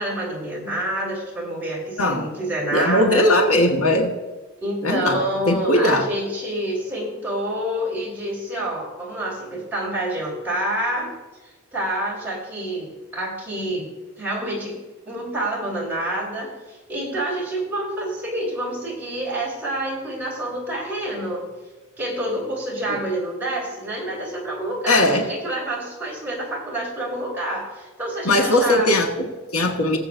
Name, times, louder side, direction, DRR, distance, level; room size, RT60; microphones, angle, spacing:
voice 1, 0.0-3.3 4.6-11.1 11.7-13.9 14.2-14.8 15.1-21.5 22.0-28.9, right 1 dB, 10° right, -6 dB, 3.5 m, -28 dB
voice 2, 2.7-4.1 4.8-5.2 5.5-6.1 22.9-23.0 24.9-25.2 28.2-30.0, left 1 dB, 75° left, 1 dB, 1.5 m, -19 dB
19.5 x 7.7 x 2.6 m, 1.2 s
head